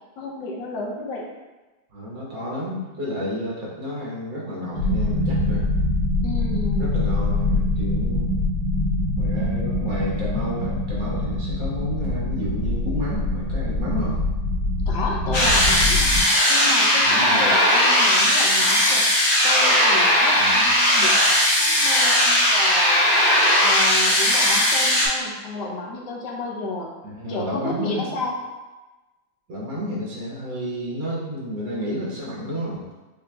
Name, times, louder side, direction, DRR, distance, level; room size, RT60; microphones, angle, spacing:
voice 1, 0.2-1.3 6.2-7.0 14.9-16.1 16.5-19.0 19.4-23.0 23.6-26.9 27.3-28.4, left 2 dB, 70° left, -2 dB, 1.2 m, -31 dB
voice 2, 1.9-5.7 6.8-8.3 9.2-14.2 17.0-17.5 20.3-20.7 27.0-28.2 29.5-33.0, equal, 75° right, -6 dB, 1.8 m, -31 dB
sound 1, 4.7-16.2, left 2 dB, 85° left, 1.8 m, -24 dB
sound 2, 15.3-25.1, left 1 dB, 50° left, 0.6 m, -18 dB
4.9 x 2.9 x 2.2 m, 1.2 s
omnidirectional pair, 2.1 m